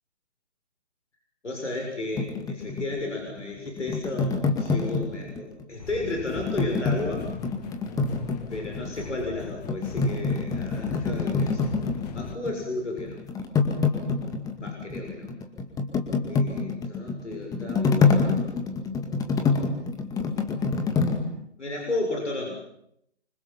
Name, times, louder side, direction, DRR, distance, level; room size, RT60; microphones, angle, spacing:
voice 1, 1.4-7.3 8.5-11.9 12.1-13.2 14.6-15.3 16.3-18.7 21.6-22.6, left 2 dB, 85° left, 0 dB, 7.1 m, -33 dB
sound 1, 2.1-5.6 6.3-9.0 9.4-12.7 12.9-21.2, left 4 dB, 10° left, 2.2 m, -26 dB
sound 2, 5.8-12.4, left 8 dB, 35° left, 1.6 m, -40 dB
28.0 x 25.5 x 5.8 m, 0.76 s
figure-of-eight pair, 140°, 35 cm